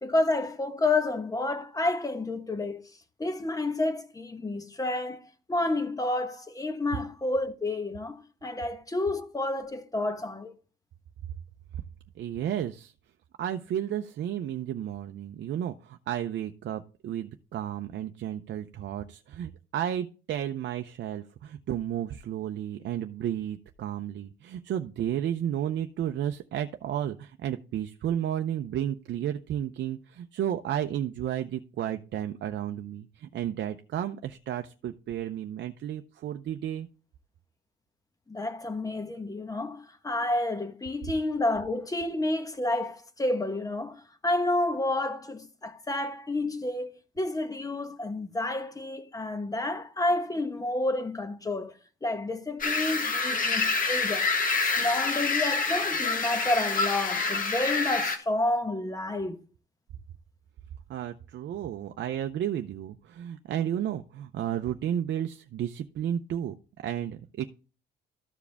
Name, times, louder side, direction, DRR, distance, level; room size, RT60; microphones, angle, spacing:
voice 1, 0.0-2.8 3.2-5.2 5.5-10.5 38.3-46.9 47.2-51.7 52.0-54.3 54.6-59.4, left 2 dB, 15° left, 1.2 m, -30 dB
voice 2, 12.2-12.9 13.4-36.9 60.9-67.5, right 10 dB, 65° right, 0.6 m, -32 dB
sound 1, 52.6-58.2, left 4 dB, 45° left, 1.5 m, -27 dB
13.5 x 4.8 x 3.4 m
cardioid pair, 90°, 20 cm